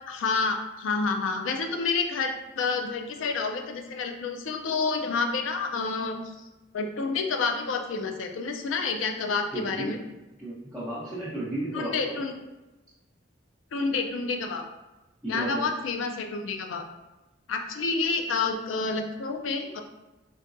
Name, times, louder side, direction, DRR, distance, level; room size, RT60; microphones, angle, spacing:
voice 1, 0.1-6.2 6.7-10.0 11.7-12.3 13.7-14.7 15.3-16.8 17.5-19.8, left 4 dB, 85° left, 4 dB, 0.4 m, -29 dB
voice 2, 9.5-10.0 10.4-12.2 15.2-15.7, right 1 dB, 10° right, -12 dB, 0.9 m, -33 dB
3.9 x 2.2 x 2.5 m, 1.1 s
head